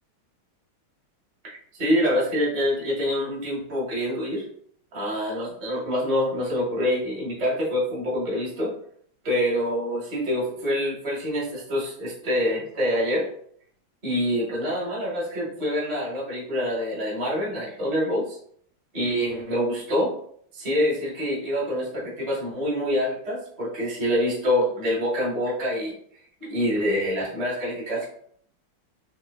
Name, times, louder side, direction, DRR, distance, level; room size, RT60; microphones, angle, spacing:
voice 1, 1.4-4.4 4.9-8.7 9.2-13.3 14.0-18.4 18.9-20.1 20.5-25.9 26.4-28.1, equal, 30° right, -4 dB, 0.7 m, -26 dB
3.8 x 3.1 x 2.3 m, 0.63 s
omnidirectional pair, 2.4 m